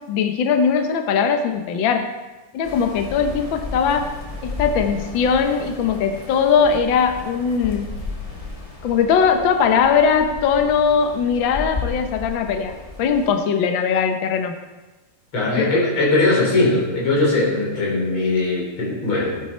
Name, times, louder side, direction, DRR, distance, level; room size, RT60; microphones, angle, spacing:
voice 1, 0.1-2.1 2.5-4.1 4.4-7.9 8.8-14.5 15.6-15.7, left 6 dB, 75° left, 5 dB, 1.1 m, -20 dB
sound 1, 2.6-13.3, left 3 dB, 15° left, 1.2 m, -34 dB
voice 2, 15.3-19.4, left 2 dB, 45° left, -3 dB, 4.5 m, -20 dB
17.0 x 9.0 x 4.4 m, 1.1 s
omnidirectional pair, 3.4 m